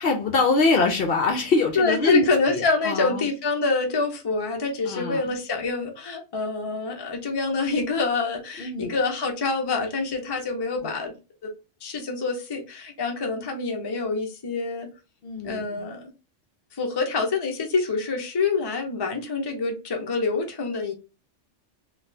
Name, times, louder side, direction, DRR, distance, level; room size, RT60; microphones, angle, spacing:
voice 1, 0.0-3.2 4.9-5.3 8.6-8.9 15.2-15.6, left 3 dB, 60° left, 3 dB, 0.7 m, -24 dB
voice 2, 1.8-11.1 11.8-14.9 15.4-16.1 16.7-20.9, left 3 dB, 25° left, 2 dB, 0.5 m, -26 dB
3.9 x 2.4 x 2.6 m, 0.30 s
omnidirectional pair, 1.2 m